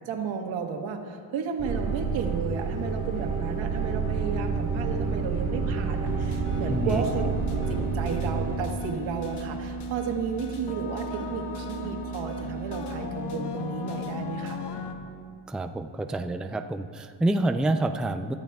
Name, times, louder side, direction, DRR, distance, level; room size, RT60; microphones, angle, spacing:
voice 1, 0.1-7.3 7.7-14.6, right 6 dB, 90° right, 3 dB, 1.6 m, -33 dB
sound 1, 1.6-8.6, right 4 dB, 20° right, 3.4 m, -29 dB
sound 2, 6.1-14.9, equal, 65° left, 1.2 m, -35 dB
voice 2, 6.7-7.0 15.5-18.3, right 1 dB, ahead, 6 dB, 0.4 m, -27 dB
24.5 x 14.0 x 2.4 m, 2.1 s
cardioid pair, 120°, 45 cm